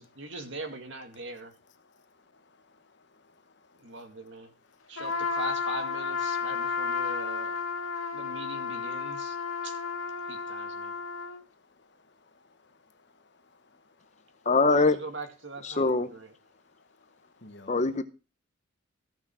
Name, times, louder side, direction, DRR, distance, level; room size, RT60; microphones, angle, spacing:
voice 1, 0.0-1.5 3.8-4.5 4.9-7.6 8.1-9.4 9.6-9.7 10.3-10.9 14.7-16.3, right 2 dB, 55° right, 2.4 m, -41 dB
voice 2, 1.8-5.0 8.1-8.4 9.0-9.7 10.2-14.4 16.5-17.8, left 2 dB, 55° left, 1.3 m, -60 dB
Trumpet, 5.0-11.4, left 5 dB, 75° left, 2.2 m, -32 dB
voice 3, 14.4-15.0 15.6-16.1 17.7-18.0, left 3 dB, 30° left, 0.7 m, -23 dB
15.0 x 6.0 x 6.1 m
head